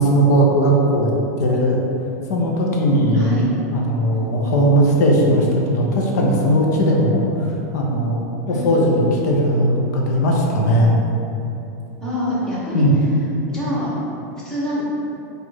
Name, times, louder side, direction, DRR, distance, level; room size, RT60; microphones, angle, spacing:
voice 1, 0.0-1.8 2.3-3.5 3.7-7.5 7.7-10.9 12.7-12.9, equal, 80° left, -2 dB, 0.8 m, -18 dB
voice 2, 8.5-8.8 12.0-12.9 13.5-14.0 14.4-14.8, equal, 5° left, -9 dB, 1.1 m, -25 dB
4.7 x 2.6 x 4.1 m, 2.9 s
supercardioid pair, 160°, 9 cm